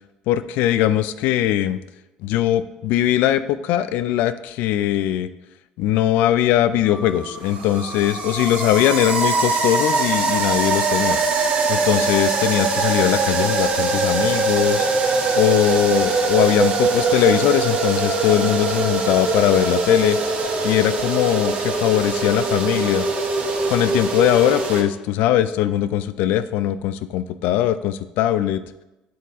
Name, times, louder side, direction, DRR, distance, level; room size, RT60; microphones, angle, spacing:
voice 1, 0.3-1.8 2.2-5.3 5.8-11.2 11.7-14.9 15.4-20.2 20.6-23.1 23.7-28.6, left 12 dB, 75° left, 13 dB, 0.3 m, -20 dB
sound 1, 6.9-24.8, right 3 dB, 50° right, 1.0 m, -22 dB
7.6 x 4.0 x 3.6 m, 1.0 s
supercardioid pair, 85°, 3 cm